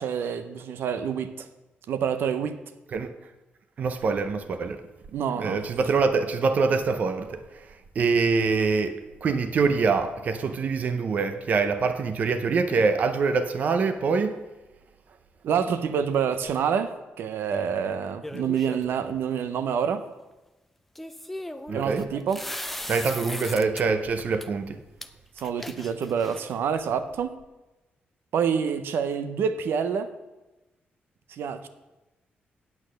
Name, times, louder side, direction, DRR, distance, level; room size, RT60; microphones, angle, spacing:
voice 1, 0.0-1.5 1.9-2.6 5.1-5.6 15.4-20.0 21.7-22.4 25.4-27.3 28.3-30.1 31.3-31.7, right 7 dB, 80° right, 0.7 m, -27 dB
voice 2, 3.8-4.8 5.4-7.7 8.0-14.4 21.7-22.1 22.9-24.8, right 4 dB, 45° right, 0.6 m, -25 dB
sound 1, 18.2-19.0 21.0-23.8 24.2-24.5 25.0-25.1 25.4-26.6, left 1 dB, 5° left, 0.4 m, -37 dB
8.9 x 8.5 x 6.3 m
wide cardioid pair, 170°, 4 cm